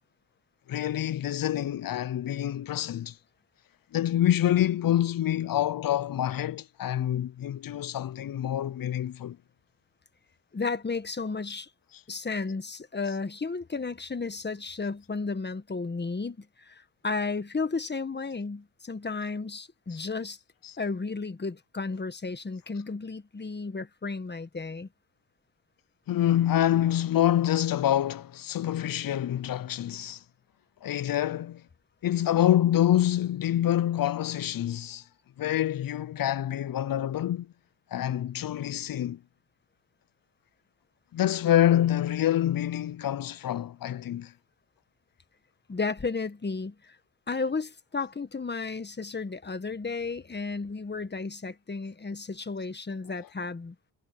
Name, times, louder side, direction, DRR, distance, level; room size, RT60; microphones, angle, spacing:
voice 1, 0.7-3.1 3.9-9.4 13.1-13.2 19.9-20.0 20.6-20.8 26.1-30.2 30.8-31.6 32.0-35.0 35.4-37.5 37.9-39.2 41.1-44.3 47.3-47.4, left 12 dB, 55° left, 0.7 m, -26 dB
voice 2, 10.5-11.7 12.1-20.4 20.8-24.9 45.7-47.0 47.3-53.7, left 4 dB, 25° left, 1.5 m, -33 dB
cardioid pair, 75°, 42 cm